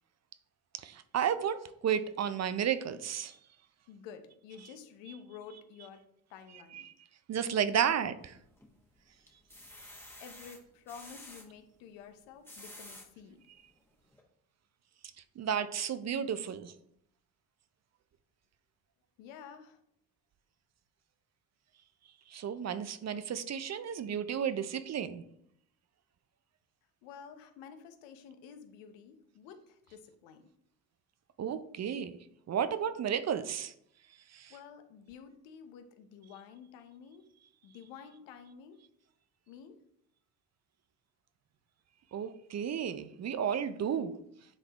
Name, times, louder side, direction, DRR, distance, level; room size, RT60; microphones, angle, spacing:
voice 1, 0.7-3.4 6.7-6.8 7.3-8.4 15.4-16.7 22.3-25.2 31.4-32.1 32.5-33.7 34.3-34.5 42.1-44.1, right 8 dB, 35° right, 0.5 m, -32 dB
voice 2, 3.9-6.0 6.3-6.9 10.2-13.4 19.2-19.8 27.0-30.4 34.5-37.3 37.6-38.8 39.5-39.8, left 7 dB, 75° left, 0.9 m, -50 dB
sound 1, 8.2-8.8 9.3-11.5 12.2-13.1 13.7-13.8 14.1-14.2, left 1 dB, 5° left, 1.6 m, -50 dB
9.8 x 3.9 x 3.0 m
hypercardioid pair, 60°, 45 cm